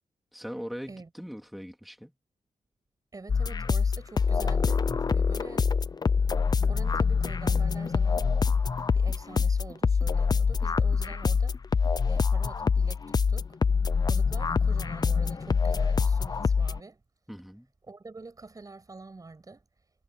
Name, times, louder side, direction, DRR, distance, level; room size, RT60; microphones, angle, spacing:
voice 1, 0.3-2.1 11.1-11.2 17.3-17.7, equal, ahead, 3.1 m, -40 dB
voice 2, 3.1-5.7 6.7-8.4 8.9-11.6 12.1-13.6 14.1-17.0 17.8-19.7, right 3 dB, 30° right, 6.8 m, -46 dB
sound 1, 3.3-16.8, left 5 dB, 30° left, 0.6 m, -25 dB
wide cardioid pair, 155°, 13 cm